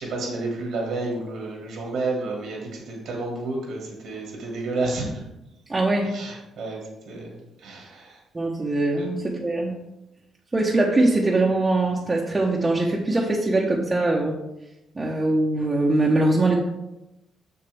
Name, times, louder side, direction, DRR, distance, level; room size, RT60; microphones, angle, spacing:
voice 1, 0.0-5.2 6.1-6.8 7.1-8.2, right 2 dB, 80° right, -1 dB, 2.0 m, -30 dB
voice 2, 5.7-6.1 8.3-9.8 10.5-14.4 14.9-16.6, right 2 dB, 25° right, -3 dB, 1.0 m, -22 dB
6.9 x 6.5 x 3.5 m, 0.93 s
cardioid pair, 90°, 0 cm